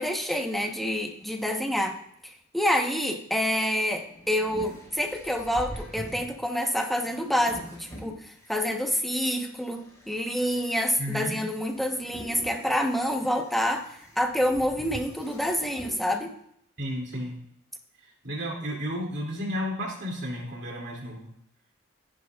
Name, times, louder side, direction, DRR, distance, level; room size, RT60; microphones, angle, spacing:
voice 1, 0.0-2.0 2.5-8.2 8.5-13.9 14.2-16.3, equal, ahead, 2 dB, 1.1 m, -27 dB
sound 1, 3.8-8.7 9.3-16.0, right 1 dB, 15° left, 3.7 m, -45 dB
voice 2, 11.0-11.4 16.8-17.4 18.2-21.3, equal, 55° right, -1 dB, 2.7 m, -32 dB
14.0 x 11.0 x 2.4 m, 0.71 s
head